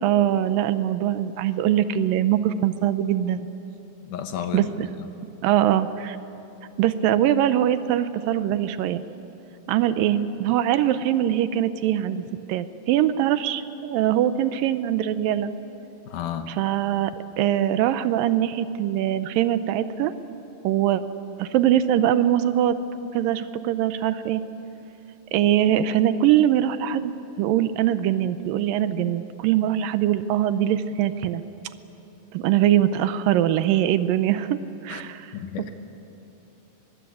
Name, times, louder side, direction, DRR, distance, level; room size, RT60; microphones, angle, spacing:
voice 1, 0.0-3.5 4.5-4.9 5.4-6.2 6.8-9.0 9.7-15.5 16.5-20.1 20.6-21.0 21.4-22.8 23.1-24.4 25.3-27.1 27.4-31.4 32.3-34.6 34.8-35.3, right 11 dB, 80° right, 12 dB, 2.3 m, -22 dB
voice 2, 4.0-5.1 16.1-16.5 34.9-35.0 35.3-35.7, left 9 dB, 70° left, 7 dB, 2.3 m, -32 dB
23.0 x 22.0 x 8.6 m, 2.9 s
omnidirectional pair, 4.2 m